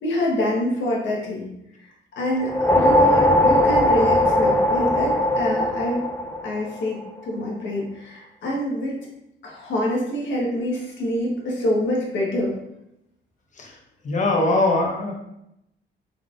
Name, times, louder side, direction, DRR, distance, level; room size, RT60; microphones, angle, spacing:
voice 1, 0.0-1.5 2.2-6.0 6.4-8.9 9.4-12.5, left 1 dB, 70° left, -3 dB, 1.3 m, -26 dB
sound 1, 2.4-6.9, left 1 dB, 15° left, 0.5 m, -19 dB
voice 2, 14.0-15.1, left 2 dB, 40° left, 0 dB, 0.9 m, -21 dB
3.8 x 3.3 x 2.4 m, 0.83 s
cardioid pair, 90°, 20 cm